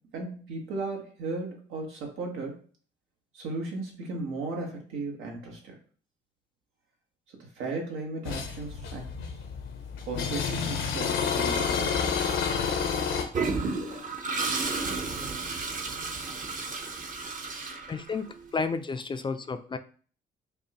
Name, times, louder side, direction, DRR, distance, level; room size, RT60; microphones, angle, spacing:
voice 1, 0.1-2.6 3.3-5.7 7.3-9.3 10.1-12.1, right 3 dB, 90° right, 1 dB, 1.1 m, -36 dB
sound 1, 8.2-13.2, left 6 dB, 80° left, 0.7 m, -29 dB
Toilet flush, 13.3-18.4, right 4 dB, 40° right, 0.7 m, -32 dB
voice 2, 17.9-19.8, left 4 dB, 25° left, 10 dB, 0.3 m, -32 dB
5.3 x 2.1 x 2.9 m, 0.42 s
cardioid pair, 90°, 20 cm